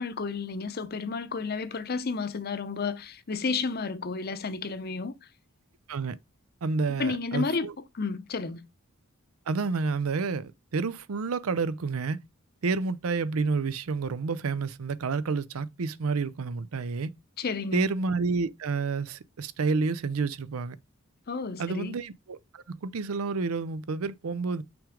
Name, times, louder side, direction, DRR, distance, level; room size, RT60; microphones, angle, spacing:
voice 1, 0.0-5.1 7.0-8.7 17.4-17.9 21.3-21.9, left 4 dB, 45° left, 0.7 m, -32 dB
voice 2, 6.6-7.7 9.5-12.2 12.6-17.1 17.7-20.8 21.6-24.6, right 4 dB, 80° right, 0.5 m, -29 dB
6.0 x 3.6 x 5.0 m
head